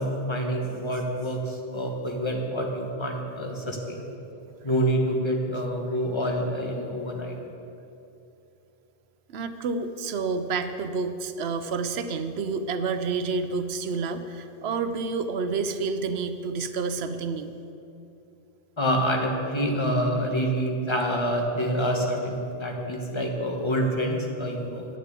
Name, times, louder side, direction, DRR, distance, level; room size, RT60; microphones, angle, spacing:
voice 1, 0.0-4.1 4.6-7.4 18.8-24.9, equal, 25° left, 1 dB, 1.3 m, -27 dB
voice 2, 9.3-17.5, right 4 dB, 75° right, 10 dB, 0.9 m, -29 dB
8.8 x 7.2 x 8.4 m, 2.7 s
omnidirectional pair, 1.1 m